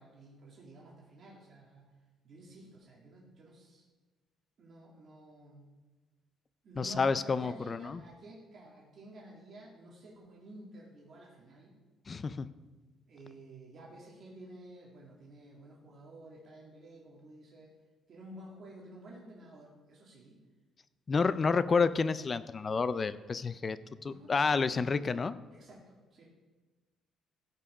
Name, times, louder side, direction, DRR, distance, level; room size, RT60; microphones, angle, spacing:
voice 1, 0.0-1.9 2.2-3.8 4.6-5.7 6.6-11.7 13.1-17.7 18.1-20.4 21.3-21.6 24.1-25.0 25.5-26.2, right 1 dB, 45° right, -3 dB, 2.4 m, -52 dB
voice 2, 6.8-8.0 12.1-12.5 21.1-25.3, left 4 dB, 30° left, 15 dB, 0.4 m, -30 dB
16.0 x 5.5 x 4.9 m, 1.2 s
cardioid pair, 140°, 0 cm